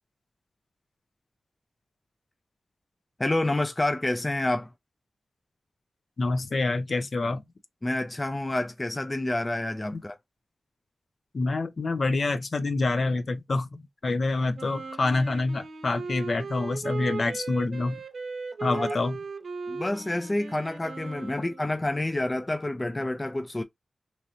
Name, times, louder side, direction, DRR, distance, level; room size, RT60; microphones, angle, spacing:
voice 1, 3.2-4.7 7.8-10.2 18.6-19.0 19.7-23.6, left 1 dB, 20° left, 0.3 m, -28 dB
voice 2, 6.2-7.4 9.9-10.0 11.3-18.0 18.6-19.2, left 3 dB, 55° left, 0.6 m, -27 dB
Wind instrument woodwind instrument, 14.5-21.7, right 4 dB, 70° right, 0.6 m, -37 dB
3.1 x 2.8 x 2.4 m
wide cardioid pair, 120°, 0 cm